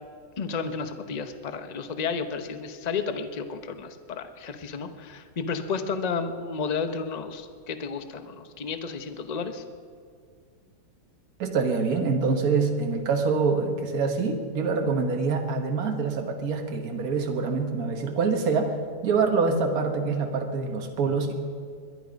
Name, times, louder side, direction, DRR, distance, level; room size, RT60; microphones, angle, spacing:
voice 1, 0.4-9.6, left 5 dB, 35° left, 9 dB, 0.7 m, -32 dB
voice 2, 11.4-18.7 19.0-21.3, right 4 dB, 60° right, 4 dB, 1.8 m, -25 dB
21.0 x 11.5 x 5.2 m, 2.2 s
omnidirectional pair, 1.9 m